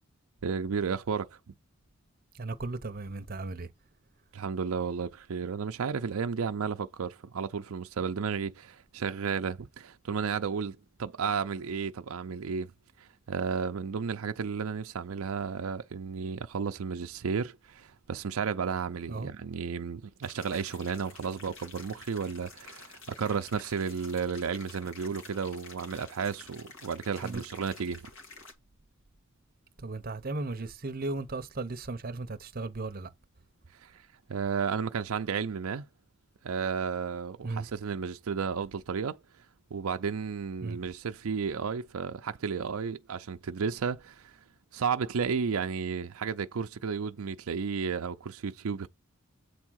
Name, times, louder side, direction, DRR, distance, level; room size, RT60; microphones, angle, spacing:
voice 1, 0.4-1.4 4.3-12.7 13.0-28.0 33.8-34.0 34.3-35.9 36.4-39.2 39.7-44.4 44.7-48.9, right 6 dB, 80° right, 0.5 m, -33 dB
voice 2, 2.4-3.7 19.1-19.3 27.2-27.4 29.8-33.1 37.4-37.7 40.6-40.8, right 3 dB, 40° right, 0.7 m, -36 dB
sound 1, 20.2-28.5, left 3 dB, 60° left, 2.0 m, -50 dB
8.1 x 3.6 x 6.2 m
head